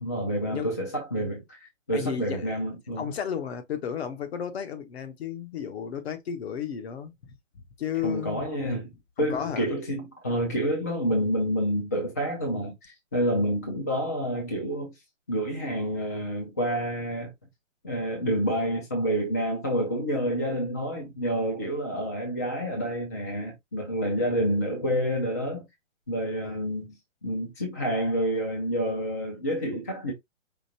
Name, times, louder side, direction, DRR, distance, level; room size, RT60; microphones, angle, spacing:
voice 1, 0.0-3.1 8.0-8.9 9.2-14.9 15.3-17.3 17.8-25.6 26.1-30.1, equal, 15° left, 0.4 m, -28 dB
voice 2, 1.9-2.6 3.0-8.7 9.2-9.7 26.4-26.6, left 8 dB, 50° left, 1.0 m, -34 dB
5.1 x 2.8 x 2.7 m
hypercardioid pair, 155°, 39 cm